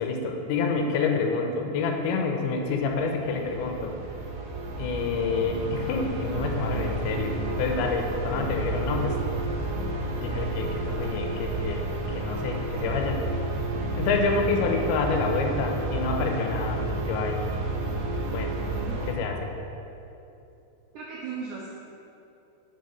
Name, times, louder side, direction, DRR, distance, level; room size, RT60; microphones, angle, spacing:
voice 1, 0.0-3.9 4.8-9.2 10.2-13.2 14.0-17.4 18.3-18.6 19.1-19.5, left 4 dB, 85° left, 3 dB, 2.6 m, -28 dB
sound 1, 2.7-19.2, right 2 dB, 70° right, 2.3 m, -31 dB
voice 2, 20.9-21.7, right 5 dB, 85° right, -4 dB, 1.7 m, -36 dB
7.6 x 5.7 x 4.5 m, 2.8 s
omnidirectional pair, 4.4 m